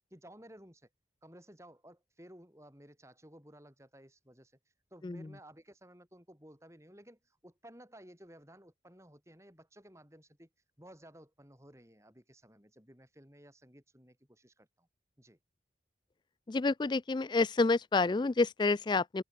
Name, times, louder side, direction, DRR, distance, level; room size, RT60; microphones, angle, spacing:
voice 1, 0.1-0.9 1.2-4.5 4.9-10.5 10.8-14.9 15.2-15.4, equal, 15° right, 7.6 m, -56 dB
voice 2, 16.5-19.2, left 3 dB, 25° left, 0.3 m, -28 dB
open air
head